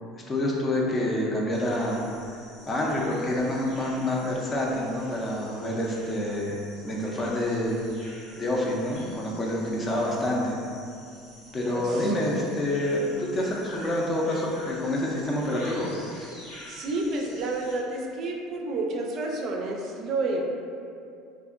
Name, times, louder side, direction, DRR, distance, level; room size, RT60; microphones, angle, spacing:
voice 1, 0.3-2.0 2.7-7.8 8.4-10.6 11.5-15.9, left 1 dB, 30° left, -2 dB, 0.5 m, -27 dB
sound 1, 1.5-17.8, left 1 dB, 80° left, 1.0 m, -47 dB
voice 2, 11.7-12.5 16.2-16.3 16.7-20.4, right 2 dB, 55° right, 0 dB, 0.4 m, -30 dB
2.7 x 2.4 x 2.4 m, 2.4 s
supercardioid pair, 105°, 0 cm